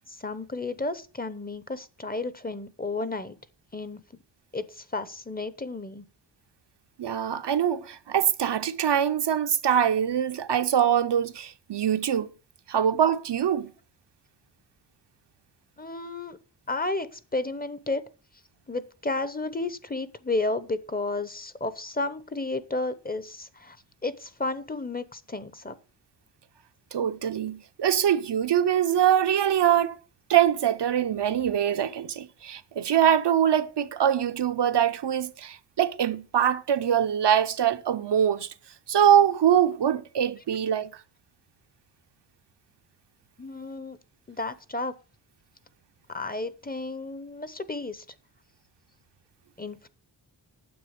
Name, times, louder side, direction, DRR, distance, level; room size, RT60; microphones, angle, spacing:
voice 1, 0.1-3.4 3.7-4.0 4.5-6.0 15.8-16.4 16.7-18.0 18.7-23.8 24.0-25.8 43.4-44.0 44.3-44.9 46.1-48.0 49.6-49.9, left 2 dB, 20° left, 0.8 m, -32 dB
voice 2, 7.0-12.3 12.7-13.7 26.9-30.0 30.3-38.5 38.9-40.9, right 9 dB, 75° right, 0.8 m, -23 dB
9.6 x 7.8 x 6.6 m
wide cardioid pair, 150°, 42 cm